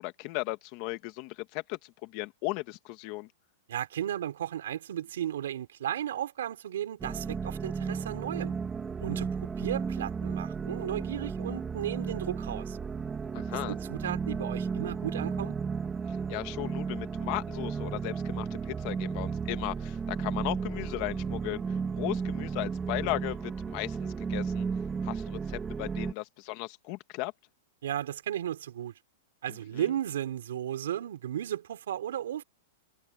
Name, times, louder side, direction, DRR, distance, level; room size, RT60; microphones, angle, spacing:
voice 1, 0.0-3.3 13.3-13.7 16.1-24.7 25.0-27.3 29.5-29.9, left 20 dB, 30° left, 1.7 m, -36 dB
voice 2, 3.7-8.5 9.0-12.8 13.5-15.6 27.8-28.9 29.4-32.4, right 11 dB, 70° right, 3.9 m, -35 dB
sound 1, 7.0-26.1, right 5 dB, 10° right, 2.0 m, -34 dB
supercardioid pair, 180°, 0 cm